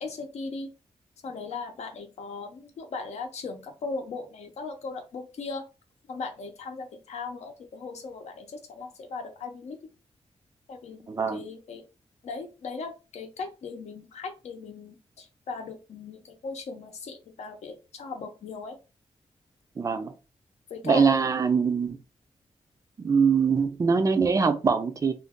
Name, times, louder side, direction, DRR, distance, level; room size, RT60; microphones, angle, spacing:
voice 1, 0.0-0.7 1.2-5.7 6.1-9.8 10.7-11.8 12.2-18.8 20.7-21.2, left 4 dB, 85° left, 0.7 m, -38 dB
voice 2, 11.1-11.4 19.8-20.1 20.8-22.0 23.0-25.1, right 5 dB, 30° right, 0.3 m, -23 dB
2.5 x 2.2 x 3.5 m
wide cardioid pair, 175°, 11 cm